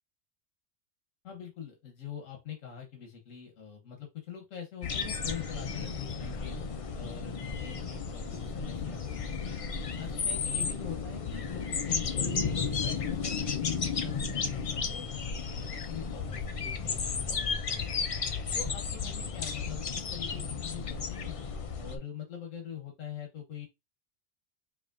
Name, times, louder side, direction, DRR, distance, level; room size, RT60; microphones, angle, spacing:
voice 1, 1.2-6.6 6.9-9.6 10.0-18.1 18.5-21.4 21.8-23.7, left 9 dB, 85° left, 2 dB, 1.3 m, -43 dB
sound 1, 4.8-22.0, left 5 dB, 65° left, 0.3 m, -33 dB
4.9 x 2.8 x 2.5 m, 0.22 s
omnidirectional pair, 1.3 m